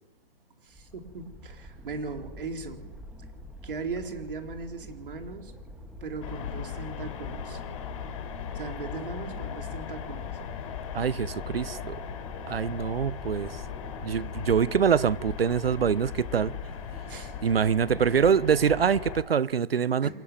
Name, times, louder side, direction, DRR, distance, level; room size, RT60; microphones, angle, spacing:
voice 1, 0.6-2.9 3.6-5.5 6.0-7.6 8.5-10.3 17.1-17.5 18.0-18.3 20.0-20.1, right 4 dB, 65° right, 4.1 m, -38 dB
sound 1, 0.7-19.1, equal, 5° right, 2.2 m, -46 dB
sound 2, 6.2-19.2, left 8 dB, 35° left, 3.4 m, -38 dB
voice 2, 10.9-12.0 12.5-13.6 14.0-16.5 17.4-20.1, right 7 dB, 80° right, 0.9 m, -24 dB
27.0 x 11.5 x 8.8 m
hypercardioid pair, 150°, 29 cm